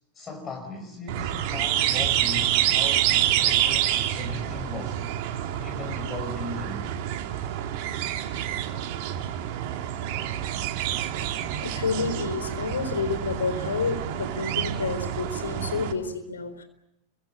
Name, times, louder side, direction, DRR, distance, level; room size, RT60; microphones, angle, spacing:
voice 1, 0.1-5.0 5.6-6.9, left 3 dB, 20° left, 4 dB, 5.1 m, -37 dB
sound 1, 1.1-15.9, right 11 dB, 45° right, 2.7 m, -27 dB
voice 2, 11.5-16.6, left 4 dB, 70° left, 10 dB, 4.2 m, -29 dB
30.0 x 24.5 x 7.0 m, 0.84 s
figure-of-eight pair, 90°, 0 cm